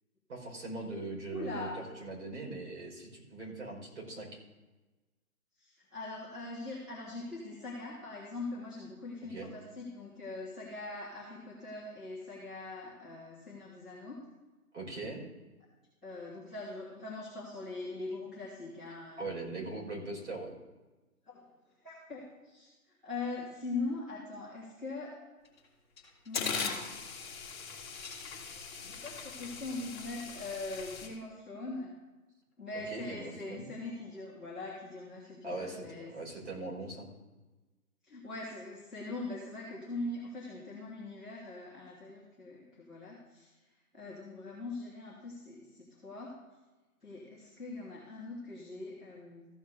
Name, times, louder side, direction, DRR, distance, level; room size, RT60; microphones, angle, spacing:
voice 1, 0.3-4.4 9.3-9.5 14.7-15.3 19.2-20.5 32.9-33.7 35.4-35.8 36.1-37.1, right 2 dB, 50° right, -2 dB, 4.6 m, -40 dB
voice 2, 1.3-1.7 5.6-14.2 16.0-19.4 21.2-21.4 21.8-25.1 26.2-26.8 28.5-31.9 32.6-36.1 38.0-43.5 43.9-46.3 47.0-49.5, left 2 dB, ahead, -13 dB, 1.3 m, -42 dB
sound 1, 25.4-25.6 26.0-31.1, left 5 dB, 15° left, 1.8 m, -40 dB
14.5 x 5.0 x 6.6 m, 1.2 s
hypercardioid pair, 170°, 45 cm